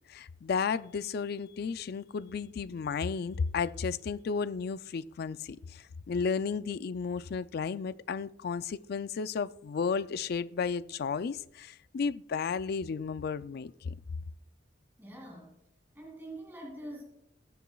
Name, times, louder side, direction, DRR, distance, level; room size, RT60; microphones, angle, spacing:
voice 1, 0.0-13.9, left 5 dB, 55° left, 0.4 m, -33 dB
voice 2, 15.0-15.6 15.9-17.0, right 1 dB, 10° right, 2.4 m, -44 dB
21.0 x 7.1 x 2.3 m
head